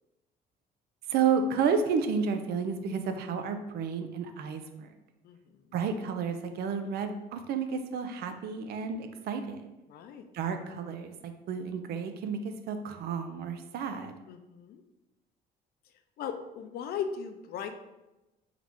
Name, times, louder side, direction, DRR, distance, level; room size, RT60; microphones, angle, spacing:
voice 1, 1.1-4.9 5.7-9.7 10.3-14.2, right 6 dB, 70° right, 8 dB, 0.5 m, -31 dB
voice 2, 5.2-5.6 9.9-10.3 14.3-14.8 16.2-17.7, left 7 dB, 65° left, 8 dB, 0.5 m, -37 dB
3.8 x 3.1 x 3.5 m, 0.99 s
cardioid pair, 110°, 17 cm